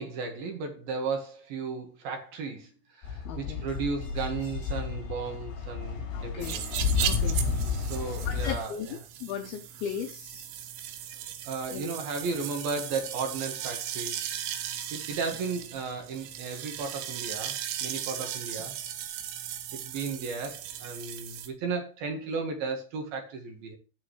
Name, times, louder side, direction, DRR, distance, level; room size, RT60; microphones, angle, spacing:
voice 1, 0.0-6.7 7.7-9.0 11.4-14.2 14.9-18.8 19.7-23.8, right 4 dB, 60° right, 5 dB, 3.0 m, -35 dB
sound 1, 3.0-8.6, left 5 dB, 60° left, 6.1 m, -31 dB
voice 2, 3.3-3.7 6.1-6.6 7.0-7.5 8.3-10.5 11.7-11.9 12.3-12.4, left 8 dB, 80° left, 6 dB, 2.2 m, -37 dB
sound 2, 6.4-21.5, right 10 dB, 90° right, 3.6 m, -37 dB
18.5 x 6.2 x 3.2 m, 0.33 s
omnidirectional pair, 5.4 m